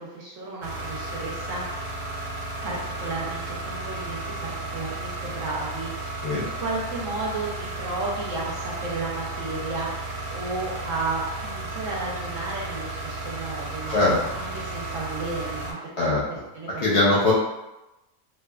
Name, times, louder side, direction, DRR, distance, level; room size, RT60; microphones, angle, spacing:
voice 1, 0.0-1.7 2.6-16.2 16.5-16.8, right 3 dB, 65° right, -5 dB, 0.9 m, -33 dB
sound 1, 0.6-15.7, right 2 dB, 85° right, 1.1 m, -34 dB
voice 2, 16.8-17.3, left 2 dB, 60° left, -7 dB, 0.7 m, -21 dB
2.8 x 2.2 x 2.3 m, 0.97 s
omnidirectional pair, 1.6 m